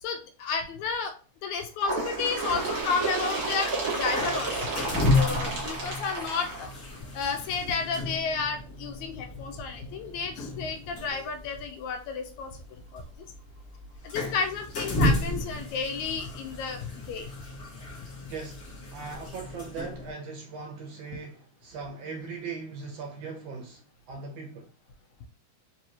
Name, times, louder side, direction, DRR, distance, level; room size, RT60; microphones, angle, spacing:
voice 1, 0.0-1.1 1.4-4.8 5.1-6.7 7.1-13.0 14.0-17.3, left 5 dB, 85° left, 2.0 m, -32 dB
sound 1, 1.8-20.1, left 2 dB, 55° left, 1.0 m, -33 dB
Bird, 1.8-7.2 8.1-8.2 8.6-8.7 9.6-9.7 10.6-10.7 11.6-11.7, right 3 dB, 50° right, 2.1 m, -31 dB
voice 2, 18.3-24.7, right 4 dB, 70° right, 1.7 m, -39 dB
4.7 x 2.9 x 2.8 m
omnidirectional pair, 3.3 m